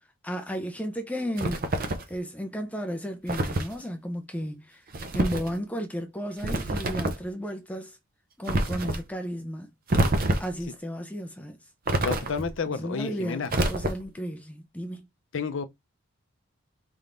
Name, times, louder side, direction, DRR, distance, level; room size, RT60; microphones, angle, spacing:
voice 1, 0.2-4.8 5.1-8.0 8.4-9.7 10.4-11.6 12.7-15.1, equal, 5° left, 0.5 m, -34 dB
sound 1, 1.4-2.1 3.3-3.7 4.9-5.5 6.4-7.3 8.5-9.0 9.9-10.6 11.9-12.6 13.5-14.2, right 2 dB, 40° right, 0.6 m, -27 dB
voice 2, 12.0-13.5 15.3-15.6, left 5 dB, 60° left, 0.6 m, -30 dB
4.4 x 3.5 x 2.5 m
head